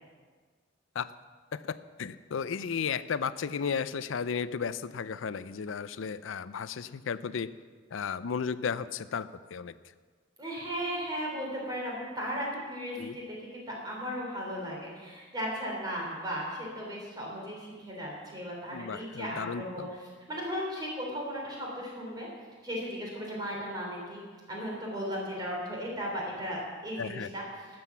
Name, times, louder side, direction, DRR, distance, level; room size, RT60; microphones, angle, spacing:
voice 1, 1.5-7.5 7.9-9.7 13.0-13.2 18.7-19.9 27.0-27.3, left 6 dB, 75° left, 15 dB, 0.5 m, -34 dB
voice 2, 10.4-20.0 20.3-22.3 22.6-24.2 24.5-27.4, equal, 20° right, -3 dB, 3.5 m, -36 dB
12.5 x 7.8 x 7.2 m, 1.5 s
head